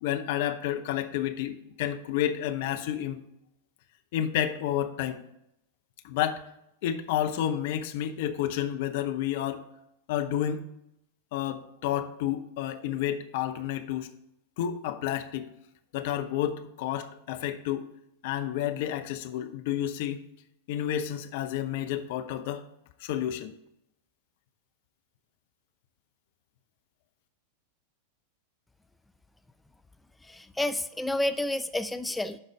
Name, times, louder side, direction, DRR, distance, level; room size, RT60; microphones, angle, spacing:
voice 1, 0.0-3.2 4.1-5.2 6.0-6.4 6.8-9.6 10.1-10.7 11.3-14.1 14.6-15.5 15.9-17.9 18.2-20.2 20.7-22.6 23.0-23.5, left 11 dB, 50° left, 8 dB, 0.7 m, -30 dB
voice 2, 30.2-32.4, left 1 dB, 5° left, 9 dB, 0.5 m, -30 dB
11.5 x 4.1 x 4.6 m, 0.82 s
figure-of-eight pair, 90°, 0 cm